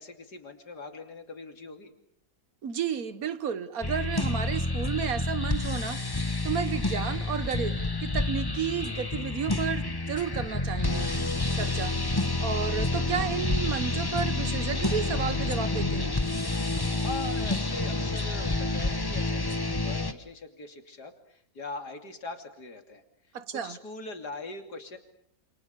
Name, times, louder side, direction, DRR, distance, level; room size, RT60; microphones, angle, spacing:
voice 1, 0.0-1.9 17.0-23.0 23.5-25.0, left 3 dB, 80° left, 3.4 m, -41 dB
voice 2, 2.6-6.0 6.4-11.1 11.5-12.0 12.4-16.2 23.3-23.8, right 7 dB, 60° right, 1.7 m, -32 dB
sound 1, 3.8-20.1, left 2 dB, 15° left, 1.2 m, -29 dB
28.0 x 28.0 x 6.9 m
omnidirectional pair, 1.7 m